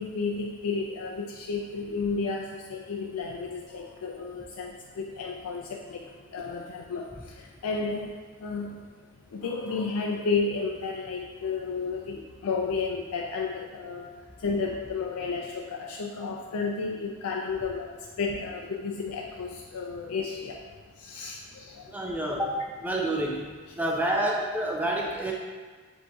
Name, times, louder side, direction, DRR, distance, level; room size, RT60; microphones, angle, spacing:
voice 1, 0.0-6.0 6.3-7.0 7.6-8.1 8.4-8.8 9.3-14.0 14.4-17.9 18.2-20.5 21.0-21.8, left 4 dB, 80° left, -1 dB, 0.4 m, -32 dB
voice 2, 21.9-23.5 23.7-25.3, right 1 dB, 5° right, -1 dB, 0.4 m, -28 dB
7.7 x 2.7 x 2.3 m, 1.5 s
head